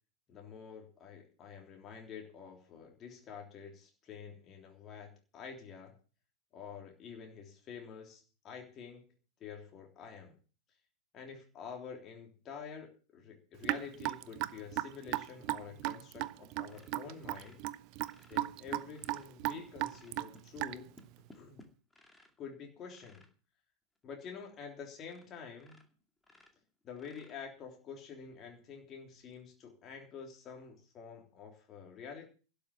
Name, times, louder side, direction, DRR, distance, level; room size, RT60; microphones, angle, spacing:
voice 1, 0.3-5.9 6.5-9.1 9.4-10.4 11.1-17.6 18.3-20.9 21.3-21.6 22.4-23.3 24.0-25.8 26.8-32.2, left 6 dB, 30° left, 1 dB, 3.5 m, -48 dB
Raindrop / Drip, 13.6-21.0, right 18 dB, 45° right, 0.6 m, -36 dB
sound 1, 16.2-16.4 16.6-19.3 19.8-22.4 22.8-23.3 24.0-24.1 24.4-24.5 25.0-25.3 25.6-27.7 29.2-29.4, left 2 dB, 10° left, 2.3 m, -61 dB
12.0 x 7.0 x 9.4 m, 0.37 s
figure-of-eight pair, 90°, 0 cm